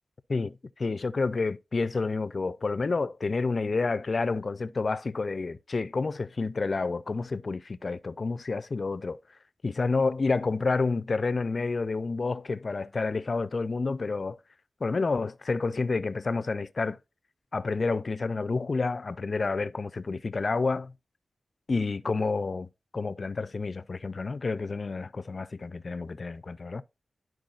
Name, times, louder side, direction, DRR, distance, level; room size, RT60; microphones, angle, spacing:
voice 1, 0.3-9.2 9.6-14.4 14.8-17.0 17.5-20.9 21.7-22.7 22.9-26.8, left 3 dB, 45° left, 0.4 m, -29 dB
12.0 x 4.6 x 2.4 m
wide cardioid pair, 100°, 0 cm